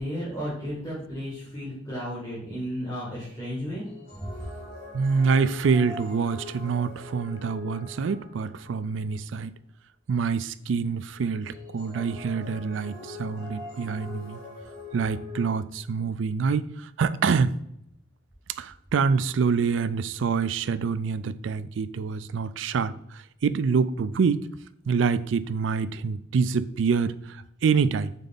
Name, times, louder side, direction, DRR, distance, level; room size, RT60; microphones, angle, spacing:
voice 1, 0.0-3.8 4.2-4.3, equal, 20° left, 1.9 m, -33 dB
sound 1, 3.8-8.9 11.4-15.5, left 3 dB, 50° left, 1.7 m, -43 dB
voice 2, 4.9-9.5 10.1-14.4 14.9-17.6 18.6-24.5 24.9-28.1, right 5 dB, 85° right, 0.4 m, -26 dB
5.3 x 4.5 x 3.9 m
head